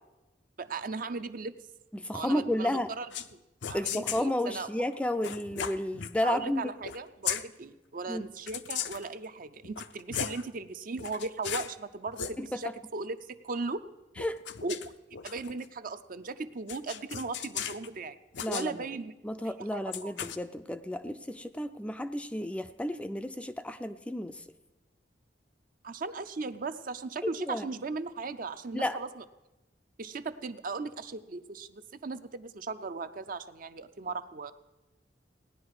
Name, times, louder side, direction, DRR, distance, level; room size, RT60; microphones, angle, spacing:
voice 1, 0.6-1.5 2.1-3.1 3.7-4.7 6.2-13.8 14.6-14.8 15.1-18.2 18.5-19.1 19.7-20.1 25.8-29.2 30.0-34.5, right 3 dB, 50° right, 10 dB, 0.6 m, -37 dB
voice 2, 1.9-2.9 3.7-6.7 8.1-8.2 12.4-12.5 14.2-14.4 18.4-18.9 19.2-24.4 27.4-27.6 28.7-29.0, left 1 dB, 5° left, 9 dB, 0.4 m, -32 dB
sound 1, 3.1-3.3 3.6-4.3 5.2-6.1 6.8-7.4 8.5-9.1 9.6-10.4 11.0-11.7 12.1-12.3 14.2-15.7 16.7-17.9 18.3-18.7 19.9-20.4, left 9 dB, 80° left, 0.6 m, -36 dB
17.5 x 10.0 x 4.8 m, 1.0 s
head